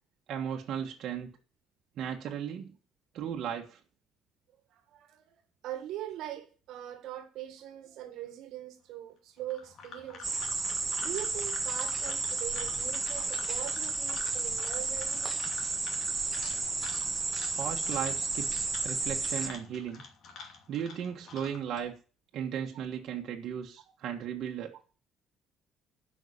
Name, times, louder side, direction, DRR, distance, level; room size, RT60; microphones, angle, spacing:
voice 1, 0.3-1.3 2.0-2.7 3.1-3.8 17.6-20.0 20.7-21.9 22.3-24.7, right 8 dB, 60° right, 1.5 m, -36 dB
voice 2, 4.7-5.3 5.6-10.5 11.0-15.7, right 12 dB, 75° right, 1.7 m, -42 dB
sound 1, 9.4-21.8, left 5 dB, 55° left, 2.5 m, -48 dB
sound 2, 10.2-19.5, right 3 dB, 20° right, 1.5 m, -32 dB
11.0 x 5.9 x 8.7 m
cardioid pair, 150°, 0 cm